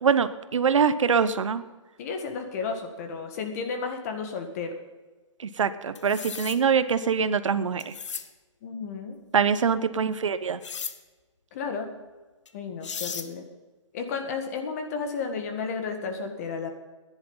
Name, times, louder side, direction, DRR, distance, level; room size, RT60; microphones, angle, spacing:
voice 1, 0.0-1.6 5.6-7.9 9.3-10.6, right 6 dB, 75° right, 13 dB, 0.9 m, -24 dB
voice 2, 2.0-4.8 8.6-9.2 11.5-11.9 12.5-13.4 13.9-16.7, left 5 dB, 30° left, 5 dB, 1.7 m, -32 dB
sound 1, 6.0-6.6 7.8-8.3 10.6-11.0 12.5-12.6 12.8-13.3, left 6 dB, 65° left, 1.2 m, -35 dB
14.5 x 10.5 x 5.6 m, 1.3 s
hypercardioid pair, 165°, 16 cm